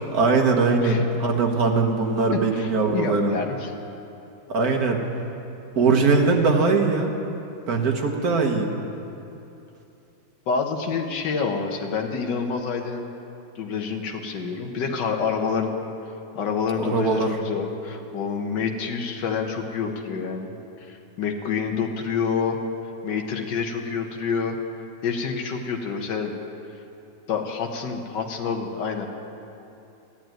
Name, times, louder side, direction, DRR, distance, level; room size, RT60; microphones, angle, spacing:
voice 1, 0.0-3.4 4.5-5.0 5.8-7.1 7.7-8.7 16.8-17.4, right 4 dB, 55° right, 2 dB, 1.8 m, -21 dB
voice 2, 2.3-3.7 10.5-13.1 13.6-15.7 16.4-20.5 20.8-22.6 23.0-24.6 25.0-26.3 27.3-29.1, left 5 dB, 75° left, 2 dB, 1.8 m, -27 dB
13.5 x 10.0 x 9.1 m, 2.8 s
omnidirectional pair, 1.9 m